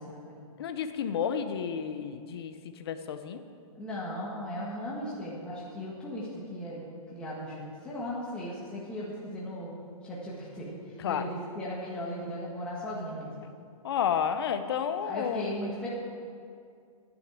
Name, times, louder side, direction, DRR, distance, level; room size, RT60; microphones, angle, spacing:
voice 1, 0.0-0.4 3.7-9.7 10.0-13.4 15.0-15.9, left 1 dB, 5° left, -7 dB, 1.4 m, -37 dB
voice 2, 0.6-3.4 11.0-11.3 13.8-15.4, left 8 dB, 45° left, 9 dB, 0.7 m, -31 dB
9.8 x 6.4 x 8.9 m, 2.3 s
hypercardioid pair, 165°, 19 cm